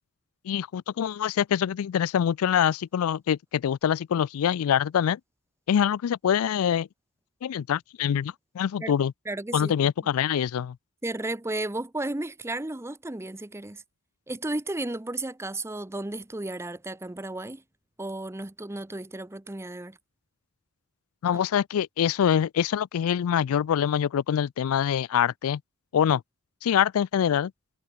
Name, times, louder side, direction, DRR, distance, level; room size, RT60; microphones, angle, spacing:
voice 1, 0.4-5.2 5.7-6.9 7.4-9.1 9.5-10.8 21.2-25.6 25.9-26.2 26.6-27.5, left 9 dB, 75° left, 0.3 m, -25 dB
voice 2, 9.3-10.1 11.0-13.8 14.3-17.6 18.0-20.0 21.3-21.4, right 2 dB, 10° right, 0.7 m, -34 dB
head